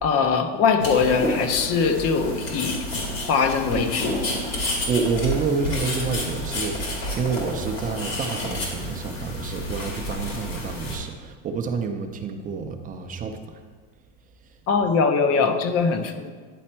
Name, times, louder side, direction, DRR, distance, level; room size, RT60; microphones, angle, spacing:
voice 1, 0.0-2.8 3.2-4.2 10.3-10.4 14.7-16.3, left 5 dB, 40° left, 8 dB, 0.6 m, -22 dB
sound 1, 0.8-11.0, left 1 dB, 70° left, 2.4 m, -30 dB
voice 2, 4.9-13.6, right 5 dB, 20° right, 5 dB, 0.5 m, -28 dB
10.0 x 4.2 x 4.3 m, 1.5 s
supercardioid pair, 135°, 39 cm